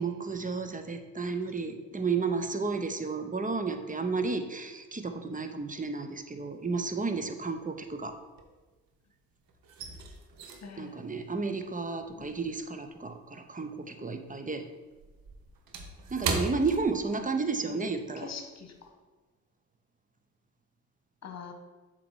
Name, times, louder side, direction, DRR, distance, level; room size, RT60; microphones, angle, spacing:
voice 1, 0.0-8.1 10.8-14.6 16.1-18.2, right 4 dB, 20° right, 7 dB, 0.9 m, -32 dB
sound 1, 6.2-6.8 7.0-9.0 9.3-14.0 14.3-17.6 17.9-18.1 18.6-18.8, right 4 dB, 60° right, 1.1 m, -38 dB
voice 2, 10.6-11.0 12.2-12.3 17.2-17.3 17.6-17.9 18.2-18.9 21.2-21.5, left 5 dB, 45° left, 5 dB, 1.3 m, -43 dB
7.7 x 3.2 x 6.2 m, 1.3 s
hypercardioid pair, 45°, 38 cm